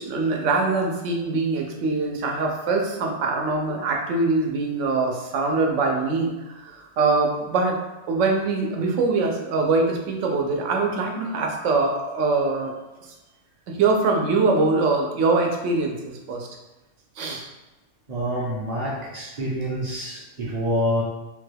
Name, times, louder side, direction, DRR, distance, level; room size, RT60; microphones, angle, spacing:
voice 1, 0.0-7.8 8.1-12.7 13.7-16.0 16.3-16.5 17.2-17.5, right 3 dB, 80° right, 1 dB, 1.0 m, -23 dB
voice 2, 18.1-21.0, equal, 45° right, -4 dB, 0.6 m, -27 dB
3.3 x 2.2 x 3.3 m, 1.1 s
omnidirectional pair, 1.3 m